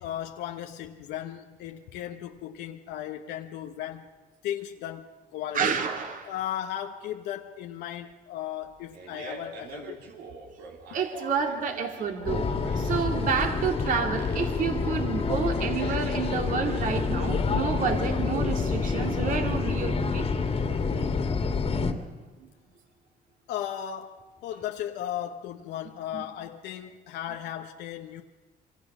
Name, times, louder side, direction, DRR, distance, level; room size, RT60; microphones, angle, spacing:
voice 1, 0.0-4.1 4.4-5.8 6.2-10.0 23.5-28.2, left 11 dB, 85° left, 1.2 m, -36 dB
voice 2, 5.5-6.3 10.9-12.5 12.8-20.3 20.7-20.8 22.4-22.5 26.1-26.2, right 6 dB, 50° right, 2.5 m, -29 dB
Fart, 8.6-16.6, right 3 dB, 80° right, 3.8 m, -45 dB
sound 1, 12.3-21.9, left 4 dB, 35° left, 2.2 m, -27 dB
26.0 x 25.5 x 6.1 m
cardioid pair, 110°, 17 cm